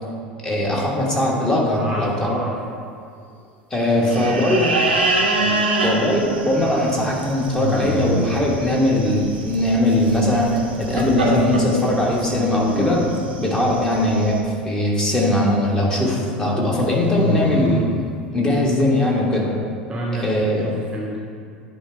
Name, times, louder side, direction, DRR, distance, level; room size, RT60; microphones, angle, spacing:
voice 1, 0.4-2.4 3.7-4.7 5.8-13.0 13.4-14.4 14.6-17.9 18.3-19.5 20.2-20.7, left 1 dB, 15° left, -3 dB, 1.5 m, -20 dB
voice 2, 1.7-2.9 3.8-5.0 5.4-5.7 6.6-6.9 19.9-21.2, right 1 dB, 15° right, -3 dB, 1.0 m, -31 dB
sound 1, 4.1-14.4, right 2 dB, 80° right, 0.9 m, -26 dB
sound 2, 4.7-5.4 7.5-8.4 12.2-13.3 16.6-17.9, left 3 dB, 35° left, 1.1 m, -26 dB
9.4 x 3.8 x 4.5 m, 2.3 s
figure-of-eight pair, 75°, 6 cm